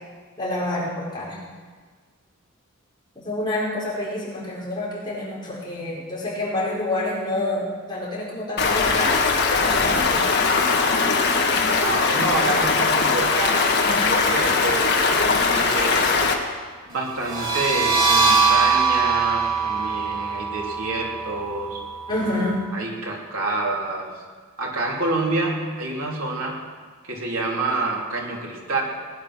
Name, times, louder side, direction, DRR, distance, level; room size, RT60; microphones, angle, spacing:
voice 1, 0.4-1.4 3.1-9.2 9.6-10.2 18.2-18.3 22.1-22.6, left 1 dB, 20° left, -6 dB, 4.6 m, -28 dB
Stream, 8.6-16.3, left 4 dB, 50° left, 1.6 m, -20 dB
voice 2, 11.6-16.2 16.9-21.8 22.7-24.1 24.6-26.6 27.0-28.8, right 2 dB, 80° right, -2 dB, 3.4 m, -28 dB
sound 1, 17.1-22.6, right 5 dB, 20° right, 2.7 m, -22 dB
19.5 x 10.5 x 6.2 m, 1.5 s
head